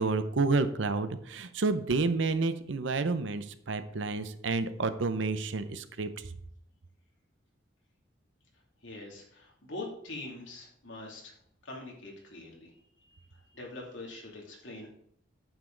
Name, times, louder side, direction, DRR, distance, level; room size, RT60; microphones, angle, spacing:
voice 1, 0.0-6.1, right 3 dB, 65° right, 11 dB, 0.7 m, -29 dB
voice 2, 8.8-11.3 11.6-12.7 13.1-13.2 13.5-14.9, left 2 dB, 65° left, -2 dB, 2.6 m, -43 dB
9.0 x 7.3 x 3.9 m, 0.68 s
head